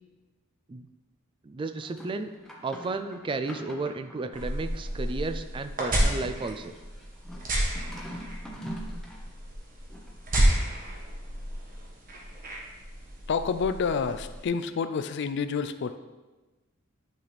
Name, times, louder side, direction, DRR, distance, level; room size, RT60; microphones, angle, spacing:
voice 1, 1.4-2.3 2.6-6.7, right 3 dB, 25° right, 9 dB, 0.3 m, -33 dB
sound 1, 1.7-4.8 5.8-9.3 9.9-10.8, equal, 5° left, 0.8 m, -44 dB
sound 2, 4.3-14.5, right 1 dB, 45° right, 1.3 m, -31 dB
voice 2, 13.3-15.9, left 5 dB, 60° left, 11 dB, 0.4 m, -28 dB
10.0 x 4.1 x 3.3 m, 1.2 s
head